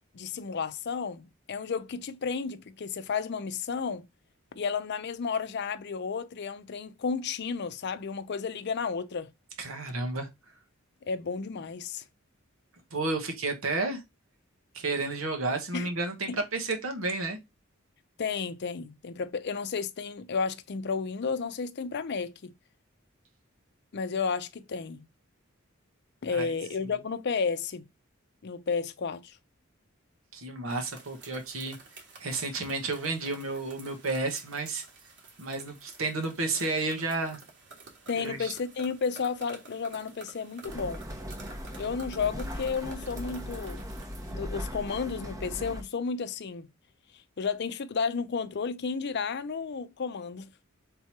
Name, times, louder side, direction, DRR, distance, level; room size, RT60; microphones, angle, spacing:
voice 1, 0.1-4.1 4.5-9.3 11.1-12.0 15.7-15.9 16.3-16.4 18.2-22.5 23.9-25.1 26.2-27.8 28.4-29.4 38.1-41.1 41.8-43.9 44.3-46.7 47.4-50.5, left 5 dB, 55° left, 0.5 m, -32 dB
voice 2, 9.6-10.3 12.9-14.0 14.7-17.4 26.3-26.5 30.3-31.8 32.2-34.8 35.4-37.4 38.1-38.5, right 3 dB, 90° right, 1.1 m, -31 dB
sound 1, 30.7-44.3, right 4 dB, 60° right, 1.3 m, -51 dB
sound 2, 40.6-45.8, equal, 15° right, 0.7 m, -38 dB
3.7 x 2.9 x 4.5 m
head